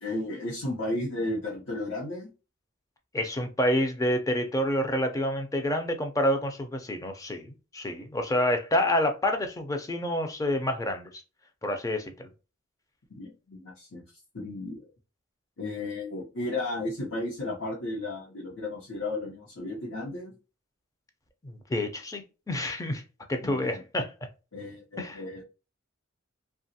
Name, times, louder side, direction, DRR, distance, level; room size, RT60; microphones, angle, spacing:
voice 1, 0.0-2.3 13.1-14.0 14.3-14.9 15.6-20.3 23.4-23.8 24.5-25.4, left 2 dB, 65° left, 0.8 m, -34 dB
voice 2, 3.1-11.1 11.6-12.3 21.4-23.0 23.3-24.1 25.0-25.2, left 1 dB, 15° left, 0.4 m, -28 dB
2.8 x 2.3 x 2.7 m
head